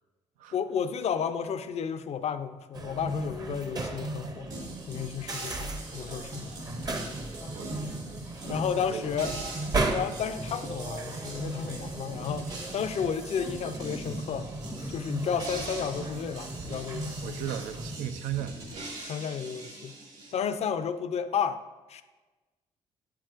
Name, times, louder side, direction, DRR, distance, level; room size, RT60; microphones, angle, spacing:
voice 1, 0.5-4.5 4.9-6.6 7.4-7.5 8.5-9.3 9.9-12.5 12.7-14.5 14.9-17.4 19.1-19.9 20.3-21.6 21.9-22.0, left 7 dB, 55° left, 11 dB, 0.4 m, -32 dB
sound 1, 2.7-18.0, right 2 dB, 30° right, 0.7 m, -36 dB
sound 2, 4.5-20.3, right 2 dB, 65° right, 2.0 m, -42 dB
voice 2, 7.5-7.9 8.9-9.1 17.2-18.9, right 10 dB, 80° right, 10 dB, 0.4 m, -36 dB
7.3 x 5.7 x 2.4 m, 1.2 s
supercardioid pair, 60°, 13 cm